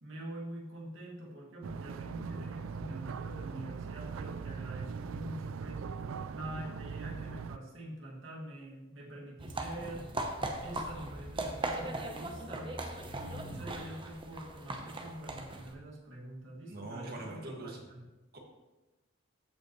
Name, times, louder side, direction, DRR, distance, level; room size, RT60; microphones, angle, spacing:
voice 1, 0.0-5.8 6.3-10.1 10.6-12.8 13.1-18.1, right 1 dB, 70° right, -3 dB, 2.2 m, -45 dB
sound 1, 1.6-7.6, right 5 dB, 90° right, 0.4 m, -40 dB
sound 2, 9.4-15.8, right 2 dB, 25° right, 0.8 m, -39 dB
voice 2, 16.7-17.8 18.3-18.4, right 2 dB, 50° right, 0 dB, 1.8 m, -43 dB
15.0 x 5.3 x 3.1 m, 1.1 s
head